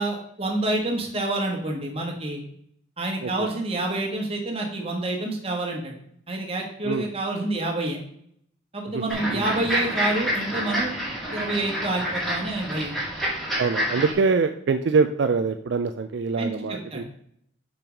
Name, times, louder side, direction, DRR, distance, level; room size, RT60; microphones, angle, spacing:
voice 1, 0.0-2.4 3.0-5.9 6.3-8.0 8.7-10.9 11.3-12.9 16.4-17.0, right 2 dB, 30° right, 0 dB, 1.5 m, -28 dB
sound 1, 9.1-14.1, equal, ahead, 2.3 m, -28 dB
voice 2, 13.6-17.0, right 4 dB, 65° right, 8 dB, 0.4 m, -24 dB
5.6 x 5.4 x 5.2 m, 0.69 s
head